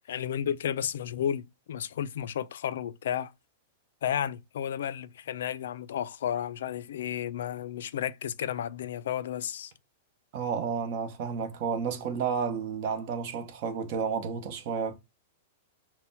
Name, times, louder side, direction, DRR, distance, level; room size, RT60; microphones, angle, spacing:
voice 1, 0.1-3.3 4.0-9.7, left 9 dB, 80° left, 0.3 m, -32 dB
voice 2, 10.3-14.9, right 6 dB, 40° right, 0.8 m, -31 dB
4.2 x 2.1 x 3.9 m
supercardioid pair, 165°, 0 cm